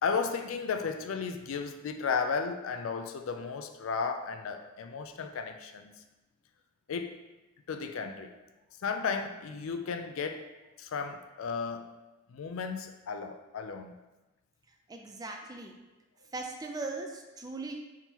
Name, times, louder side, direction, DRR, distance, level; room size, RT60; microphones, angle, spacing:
voice 1, 0.0-6.0 6.9-7.2 7.7-8.3 8.8-10.5 10.8-12.0 12.3-13.9, left 5 dB, 90° left, 7 dB, 0.4 m, -34 dB
voice 2, 14.9-15.8 16.3-17.7, right 3 dB, 20° right, 3 dB, 0.4 m, -39 dB
4.2 x 3.6 x 2.9 m, 1.1 s
head